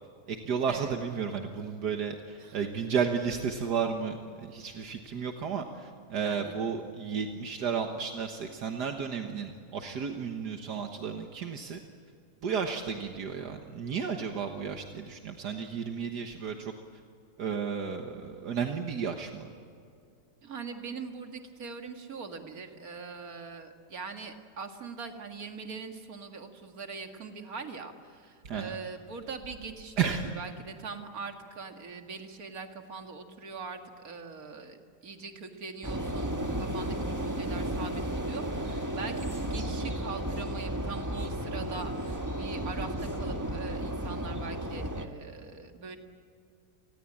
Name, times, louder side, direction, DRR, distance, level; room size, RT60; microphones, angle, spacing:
voice 1, 0.3-4.2 4.5-11.8 12.4-16.7 17.4-19.5 28.5-28.7 30.0-30.3, right 6 dB, 75° right, 4 dB, 1.9 m, -33 dB
voice 2, 6.1-6.6 20.4-46.0, right 4 dB, 55° right, 5 dB, 2.5 m, -42 dB
sound 1, 35.8-45.1, right 1 dB, 10° right, 1.3 m, -33 dB
29.0 x 20.0 x 8.7 m, 2.4 s
omnidirectional pair, 1.8 m